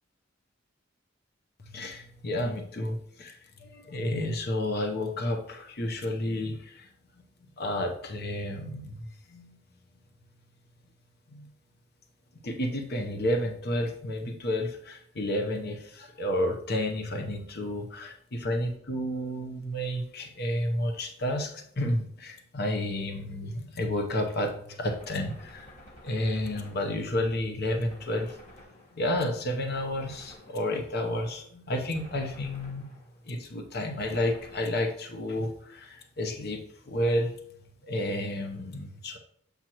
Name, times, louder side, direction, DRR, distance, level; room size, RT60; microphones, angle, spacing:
voice 1, 1.7-6.9 7.6-9.6 11.3-11.5 12.4-25.8 26.0-28.4 29.0-32.8 33.2-37.3 37.8-39.2, left 1 dB, 55° left, 4 dB, 0.9 m, -31 dB
Gunshot gunfire, 24.9-27.4 27.9-29.3 30.0-31.0 31.9-33.3 34.0-35.3, left 1 dB, 35° left, 2.3 m, -52 dB
7.6 x 5.2 x 3.0 m, 0.67 s
head